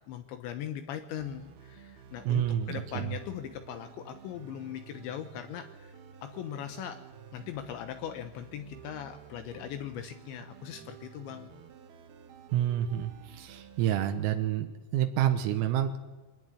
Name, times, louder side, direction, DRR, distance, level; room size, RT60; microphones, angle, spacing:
voice 1, 0.1-7.0 7.3-11.6, left 10 dB, 75° left, 8 dB, 3.0 m, -40 dB
sound 1, 1.2-13.9, right 8 dB, 65° right, 2.7 m, -51 dB
voice 2, 2.3-3.2 12.5-16.0, right 11 dB, 85° right, 6 dB, 3.9 m, -29 dB
23.5 x 18.0 x 9.7 m, 1.2 s
omnidirectional pair, 6.0 m